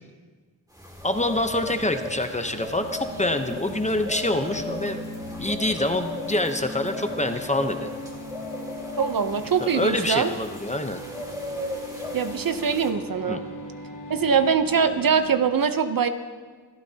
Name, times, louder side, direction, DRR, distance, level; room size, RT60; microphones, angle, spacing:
sound 1, 0.8-12.9, left 1 dB, 10° right, 2.1 m, -37 dB
voice 1, 1.0-5.0 5.4-7.9 9.7-11.0 13.3-13.4, left 1 dB, 15° left, 7 dB, 0.8 m, -26 dB
sound 2, 1.3-15.4, left 1 dB, 85° left, 4.2 m, -39 dB
voice 2, 9.0-10.3 12.1-13.4 14.1-16.1, right 6 dB, 50° right, 9 dB, 0.8 m, -23 dB
26.5 x 13.0 x 2.8 m, 1.5 s
wide cardioid pair, 110°, 43 cm